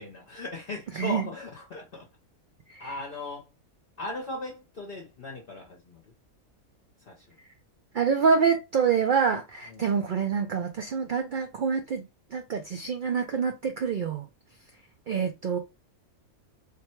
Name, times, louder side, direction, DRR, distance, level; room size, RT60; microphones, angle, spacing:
voice 1, 0.0-2.1 2.8-3.5 4.0-6.0 7.1-7.2 9.7-9.8, left 2 dB, 45° left, 0.9 m, -38 dB
voice 2, 7.9-12.0 12.3-14.3 15.1-15.6, right 6 dB, 85° right, 0.4 m, -26 dB
3.4 x 2.2 x 4.3 m
omnidirectional pair, 1.5 m